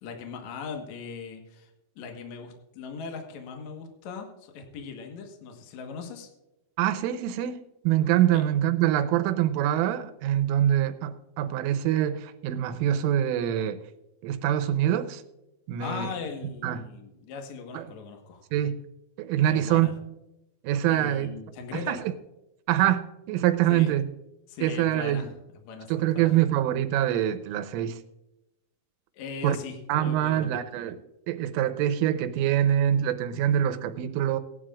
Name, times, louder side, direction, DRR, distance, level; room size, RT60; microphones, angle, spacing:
voice 1, 0.0-1.7 1.9-6.3 8.3-8.4 15.8-18.4 19.5-19.9 20.9-22.0 23.7-23.9 24.5-25.3 25.6-26.4 29.1-30.6, left 5 dB, 85° left, 4 dB, 1.6 m, -39 dB
voice 2, 6.8-13.8 14.2-15.2 15.7-16.1 16.6-16.8 17.7-17.8 18.5-18.8 19.2-19.9 20.6-21.3 21.7-22.0 22.7-24.0 24.6-25.3 25.9-28.0 29.4-29.6 29.9-31.0 31.3-34.4, right 11 dB, 85° right, 9 dB, 3.3 m, -25 dB
19.0 x 11.0 x 2.5 m, 0.92 s
omnidirectional pair, 5.7 m